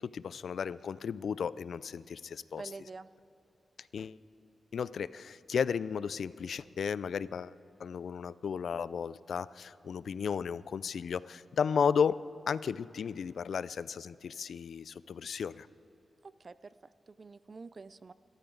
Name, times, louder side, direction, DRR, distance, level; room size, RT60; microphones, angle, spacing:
voice 1, 0.0-2.6 3.9-4.2 4.7-12.2 12.5-15.7, left 6 dB, 75° left, 18 dB, 0.3 m, -34 dB
voice 2, 2.6-3.1 16.2-18.1, right 4 dB, 40° right, 15 dB, 0.4 m, -47 dB
25.5 x 13.5 x 3.9 m, 2.9 s
wide cardioid pair, 105°, 0 cm